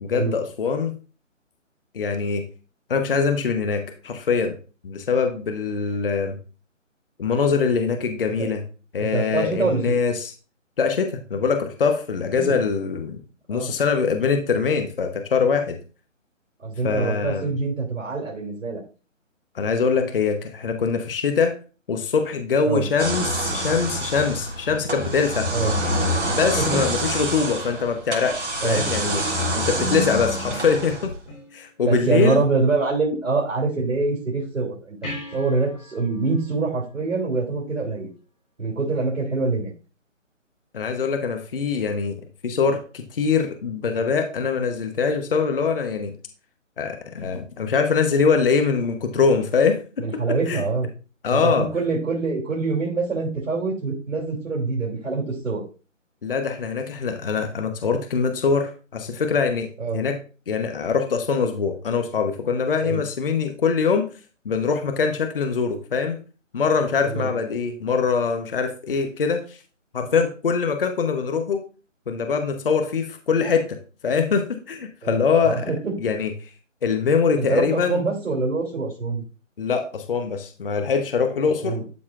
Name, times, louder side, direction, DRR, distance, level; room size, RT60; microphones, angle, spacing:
voice 1, 0.0-1.0 1.9-2.4 2.9-4.6 4.8-6.4 7.2-8.6 8.9-10.3 10.8-13.2 13.5-15.8 16.8-17.5 19.5-21.5 21.9-25.5 26.3-29.2 29.6-31.1 31.5-32.4 40.7-42.1 42.4-46.1 46.8-50.2 50.5-50.6 51.2-51.7 56.2-59.7 59.9-60.2 60.5-64.1 64.4-66.2 66.5-69.6 69.9-71.6 72.1-73.8 74.0-75.7 76.0-76.5 76.8-78.0 79.6-81.8, left 5 dB, 45° left, 6 dB, 0.9 m, -23 dB
voice 2, 9.0-10.0 12.3-12.6 13.5-13.7 16.6-18.8 22.6-22.8 25.5-25.7 26.6-26.8 28.6-28.9 31.8-38.1 38.6-39.7 50.0-50.9 51.3-55.6 59.8-60.0 62.8-63.0 67.1-67.3 75.0-76.0 77.4-79.2 81.6-81.8, right 3 dB, 80° right, -3 dB, 3.0 m, -25 dB
sound 1, 23.0-31.3, right 1 dB, 60° right, 3.2 m, -26 dB
sound 2, 31.3-32.2 35.0-37.9 41.0-41.1, left 1 dB, 5° left, 0.7 m, -43 dB
12.5 x 4.1 x 2.4 m, 0.35 s
figure-of-eight pair, 160°, 39 cm